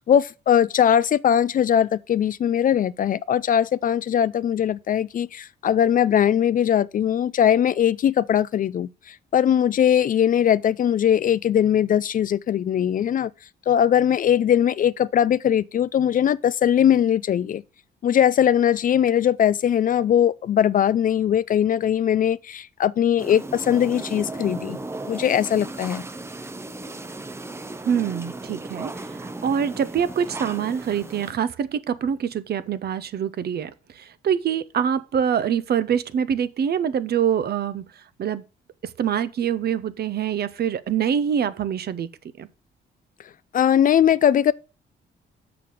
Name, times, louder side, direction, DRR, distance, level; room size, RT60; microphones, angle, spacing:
voice 1, 0.0-13.3 13.7-17.6 18.0-24.8 25.1-26.0 43.5-44.5, left 9 dB, 45° left, 0.4 m, -20 dB
sound 1, 23.2-31.3, right 2 dB, 15° right, 0.6 m, -36 dB
voice 2, 27.8-37.8 38.2-38.4 39.0-42.1 42.4-42.5, right 8 dB, 55° right, 0.7 m, -25 dB
6.8 x 5.9 x 4.9 m
cardioid pair, 90°, 20 cm